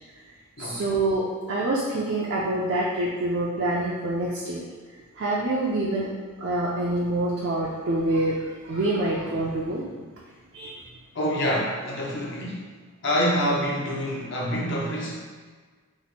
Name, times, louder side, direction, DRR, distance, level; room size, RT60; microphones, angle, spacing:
voice 1, 0.6-4.6 5.2-6.1 6.4-9.9 10.5-10.8, right 2 dB, 50° right, -5 dB, 0.4 m, -26 dB
voice 2, 11.1-12.6 13.0-15.1, equal, 55° left, -4 dB, 0.6 m, -26 dB
2.9 x 2.1 x 4.1 m, 1.5 s
head